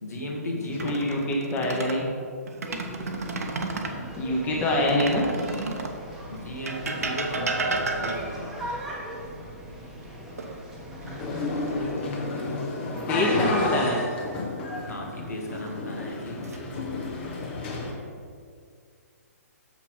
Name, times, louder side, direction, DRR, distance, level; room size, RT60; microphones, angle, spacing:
voice 1, 0.0-1.0 3.9-4.2 4.5-5.0 6.3-8.6 11.0-12.7 14.9-16.5, left 1 dB, 75° left, -1 dB, 1.7 m, -35 dB
sound 1, 0.6-2.0 2.5-4.0 4.9-6.0 6.7-8.5 10.4-11.1 11.5-11.7 14.6-15.2 15.9-16.6, right 3 dB, 70° right, 0.9 m, -32 dB
voice 2, 0.8-2.1 4.2-5.2 13.1-14.0, left 1 dB, 15° left, -2 dB, 1.2 m, -25 dB
sound 2, 2.7-11.9, equal, 5° right, 1.2 m, -39 dB
sound 3, 11.2-17.9, left 2 dB, 40° left, 1.3 m, -31 dB
7.0 x 5.7 x 4.6 m, 2.2 s
figure-of-eight pair, 130°, 9 cm